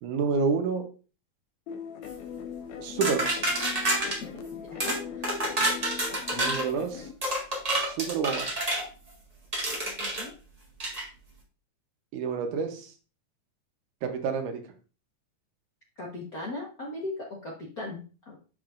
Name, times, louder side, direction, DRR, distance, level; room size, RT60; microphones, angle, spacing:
voice 1, 0.0-0.9 2.8-3.3 6.3-7.1 7.8-8.5 12.1-12.9 14.0-14.6, right 5 dB, 80° right, 5 dB, 2.4 m, -29 dB
sound 1, 1.7-7.1, left 8 dB, 70° left, 2.0 m, -40 dB
sound 2, 3.0-4.2 4.8-5.0 5.2-6.7 7.2-8.8 9.5-10.2 10.8-11.0, right 1 dB, 20° right, 1.0 m, -28 dB
voice 2, 4.2-5.3 9.9-10.3 16.0-18.4, left 2 dB, 55° left, -3 dB, 1.0 m, -39 dB
7.3 x 7.0 x 2.5 m, 0.36 s
omnidirectional pair, 3.6 m